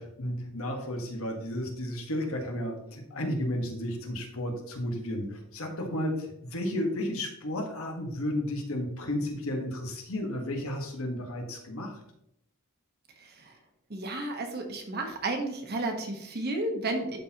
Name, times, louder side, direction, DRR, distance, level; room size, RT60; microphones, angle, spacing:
voice 1, 0.0-12.0, left 1 dB, 80° left, 3 dB, 1.5 m, -33 dB
voice 2, 13.2-13.5 13.9-17.2, right 2 dB, 50° right, 4 dB, 1.2 m, -32 dB
12.0 x 4.3 x 2.9 m, 0.77 s
head